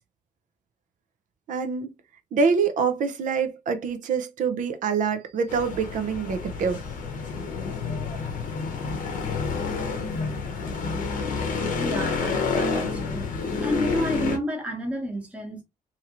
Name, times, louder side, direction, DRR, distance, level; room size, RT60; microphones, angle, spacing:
voice 1, 1.5-1.9 2.3-6.8, right 5 dB, 70° right, 0.6 m, -25 dB
sound 1, 5.5-14.4, left 4 dB, 85° left, 0.8 m, -29 dB
voice 2, 11.8-13.3 13.6-15.6, equal, 10° right, 1.0 m, -30 dB
2.9 x 2.8 x 2.4 m
cardioid pair, 140°, 14 cm